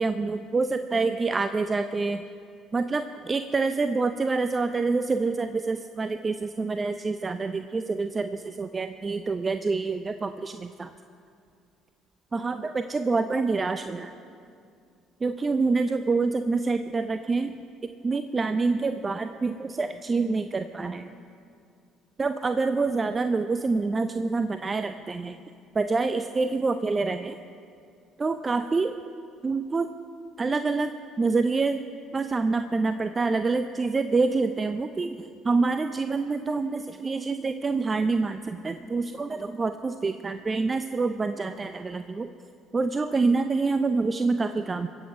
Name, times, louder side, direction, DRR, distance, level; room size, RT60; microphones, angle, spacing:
voice 1, 0.0-2.2 2.7-10.9 12.3-14.1 15.2-17.5 18.0-21.1 22.2-25.4 25.7-27.4 28.2-28.9 29.4-29.9 30.4-30.9 31.2-31.8 32.1-42.3 42.7-44.9, right 3 dB, 30° right, 9 dB, 0.5 m, -26 dB
23.0 x 8.2 x 4.9 m, 2.4 s
hypercardioid pair, 55°, 0 cm